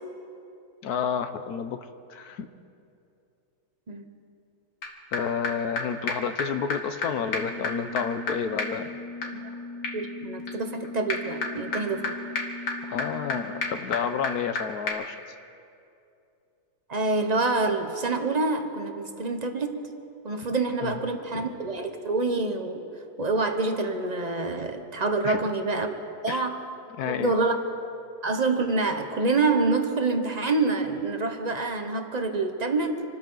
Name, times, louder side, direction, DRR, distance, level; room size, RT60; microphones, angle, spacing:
voice 1, 0.8-1.8 2.1-2.5 5.1-8.9 12.8-15.2 20.8-21.0 21.3-21.5 25.2-25.4 26.3-26.4 27.0-27.3, left 7 dB, 70° left, 10 dB, 1.3 m, -30 dB
sound 1, 4.8-4.9 5.1-5.2 5.4-5.5 5.8-5.9 6.1-6.2 6.4-6.5 6.7-6.8 7.0-7.1 7.3-14.6 14.9-15.0, left 3 dB, 85° left, 2.2 m, -32 dB
voice 2, 9.9-12.2 16.9-19.9 20.2-22.8 23.2-25.9 26.2-26.6 27.0-27.6 28.2-33.1, right 3 dB, 30° right, 5 dB, 0.9 m, -26 dB
27.0 x 13.5 x 3.9 m, 2.6 s
omnidirectional pair, 1.8 m